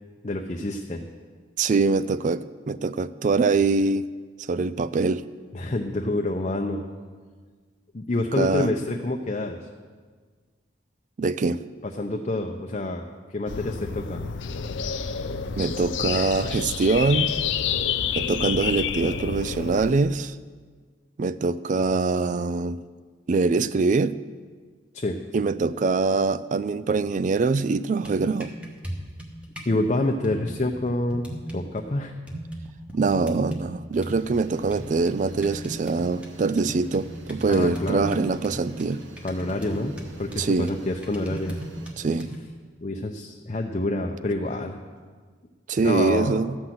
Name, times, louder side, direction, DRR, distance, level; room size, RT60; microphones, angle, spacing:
voice 1, 0.2-1.0 5.5-6.8 7.9-9.6 11.8-13.0 13.3-14.2 24.9-25.2 29.7-31.3 31.5-32.1 37.5-38.2 39.2-41.6 42.8-44.8 45.8-46.3, left 2 dB, 35° left, 2 dB, 0.6 m, -27 dB
voice 2, 1.6-4.0 4.5-5.2 8.4-8.7 11.2-11.6 15.6-17.3 18.2-20.4 21.2-22.8 23.3-24.1 25.3-28.5 32.9-39.0 40.4-40.7 42.0-42.3 45.7-46.6, right 4 dB, 40° right, 15 dB, 0.3 m, -23 dB
sound 1, 13.5-19.9, left 7 dB, 80° left, 0.6 m, -29 dB
sound 2, 27.8-29.8 30.2-31.8 32.3-33.7 34.0-42.5, equal, 5° right, 1.2 m, -39 dB
sound 3, 33.9-41.9, right 1 dB, 80° right, 1.0 m, -43 dB
13.0 x 5.9 x 7.8 m, 1.5 s
head